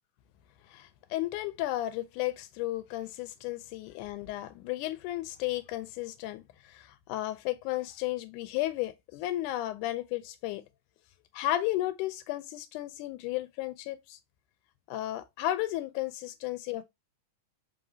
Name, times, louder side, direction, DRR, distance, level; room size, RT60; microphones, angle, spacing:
voice 1, 0.7-10.6 11.3-14.2 14.9-16.8, left 15 dB, 80° left, 2.0 m, -34 dB
4.8 x 3.2 x 2.7 m
omnidirectional pair, 3.6 m